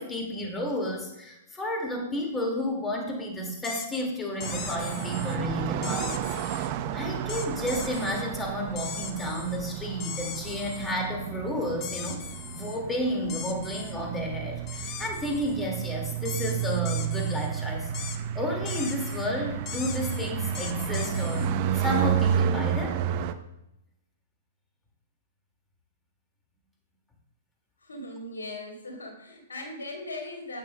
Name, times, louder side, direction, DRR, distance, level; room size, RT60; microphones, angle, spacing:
voice 1, 0.0-12.2 12.5-17.9 18.3-23.0, equal, 15° left, 1 dB, 2.0 m, -32 dB
sound 1, 3.6-4.0 4.4-5.4 5.8-6.7 7.3-8.2 8.8-9.6 10.0-11.0 11.8-12.8 13.3-13.9 14.7-15.6 16.2-17.5 17.9-18.2 18.7-19.3 19.7-21.5, left 8 dB, 35° left, 0.8 m, -39 dB
sound 2, 4.4-23.3, right 9 dB, 45° right, 0.6 m, -31 dB
voice 2, 27.8-30.6, left 2 dB, 80° left, 0 dB, 2.9 m, -39 dB
12.0 x 8.3 x 2.2 m, 0.86 s
hypercardioid pair, 115°, 0 cm